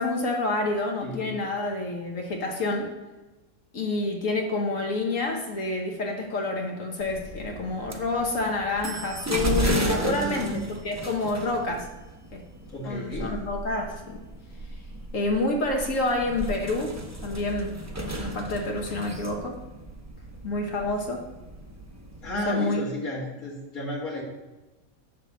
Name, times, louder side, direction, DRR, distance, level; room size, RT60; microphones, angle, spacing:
voice 1, 0.0-2.9 3.7-11.9 12.3-12.4 12.8-14.2 15.1-19.6 20.4-21.2 22.5-22.8, left 2 dB, 65° left, 1 dB, 1.5 m, -28 dB
voice 2, 1.0-1.4 9.8-10.6 12.7-13.4 22.2-24.2, left 1 dB, 80° left, -5 dB, 2.3 m, -33 dB
sound 1, 7.0-22.4, right 1 dB, 15° right, 0.7 m, -34 dB
10.0 x 3.5 x 7.1 m, 1.1 s
omnidirectional pair, 1.5 m